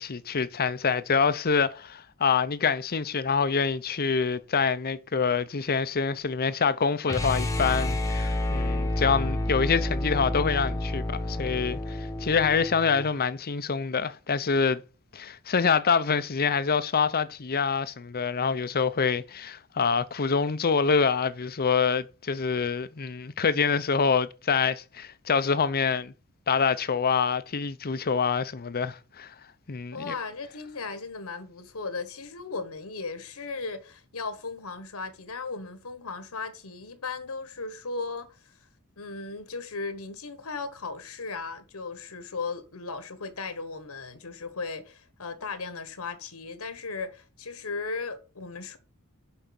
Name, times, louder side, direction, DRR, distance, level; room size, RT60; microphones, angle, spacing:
voice 1, 0.0-14.8 15.1-26.1 26.5-29.3 29.7-30.1, left 5 dB, 45° left, 0.7 m, -26 dB
sound 1, 7.0-13.1, left 1 dB, 15° left, 1.1 m, -29 dB
voice 2, 29.9-38.5 39.0-48.8, left 4 dB, 75° left, 1.3 m, -36 dB
7.3 x 5.7 x 7.0 m
head